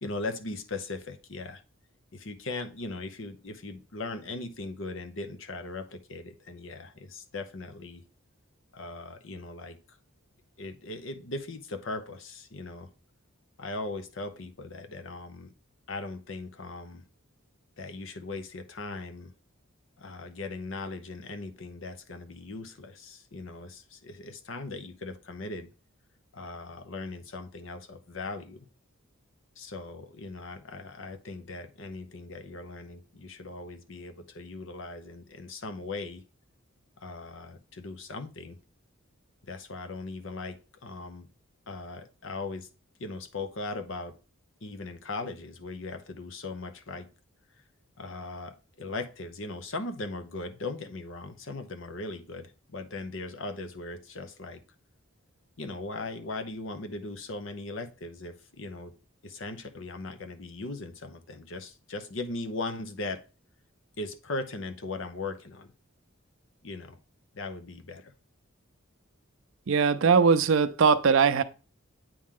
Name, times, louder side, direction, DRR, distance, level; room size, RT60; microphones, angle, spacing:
voice 1, 0.0-1.6 2.1-8.0 8.7-10.0 10.6-12.9 13.6-15.5 15.9-17.0 17.8-19.3 20.0-25.7 26.3-28.7 29.6-36.2 37.0-38.6 39.4-41.3 41.7-42.7 43.0-44.2 44.6-47.1 48.0-54.6 55.6-58.9 59.2-63.2 64.0-65.7 66.6-67.0 67.3-68.1, left 3 dB, 60° left, 0.7 m, -39 dB
voice 2, 69.7-71.4, right 5 dB, 65° right, 0.5 m, -21 dB
8.6 x 3.1 x 3.7 m
head